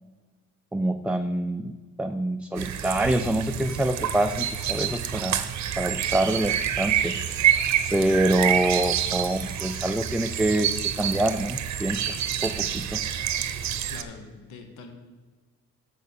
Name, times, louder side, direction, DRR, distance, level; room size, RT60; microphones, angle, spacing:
voice 1, 0.7-1.7 2.0-5.4 5.8-7.2 7.9-10.7 11.0-13.0, right 1 dB, 5° right, 6 dB, 0.3 m, -26 dB
sound 1, 2.6-14.0, right 10 dB, 70° right, 0.7 m, -27 dB
voice 2, 13.9-14.9, left 4 dB, 80° left, 6 dB, 1.2 m, -43 dB
6.6 x 6.6 x 6.9 m, 1.3 s
cardioid pair, 90°, 30 cm